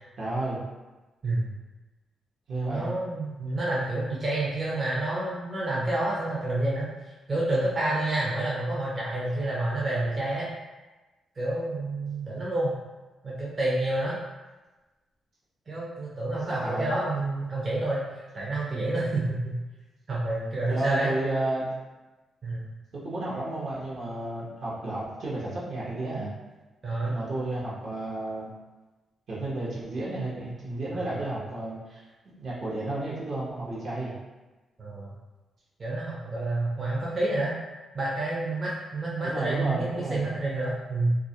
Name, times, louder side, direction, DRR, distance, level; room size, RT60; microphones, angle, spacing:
voice 1, 0.2-0.6 2.5-2.9 16.5-17.0 20.7-21.7 22.9-26.3 27.0-28.5 29.3-32.0 32.4-34.1 39.2-40.4, right 2 dB, 65° right, -6 dB, 0.8 m, -32 dB
voice 2, 2.7-6.9 7.3-10.5 11.4-12.8 13.2-14.2 15.7-18.1 18.3-19.6 20.1-21.1 22.4-22.7 26.8-27.2 30.9-31.4 34.8-35.1 35.8-37.5 37.9-41.2, right 2 dB, 40° right, -6 dB, 0.5 m, -29 dB
2.3 x 2.0 x 2.7 m, 1.2 s
cardioid pair, 75°, 0 cm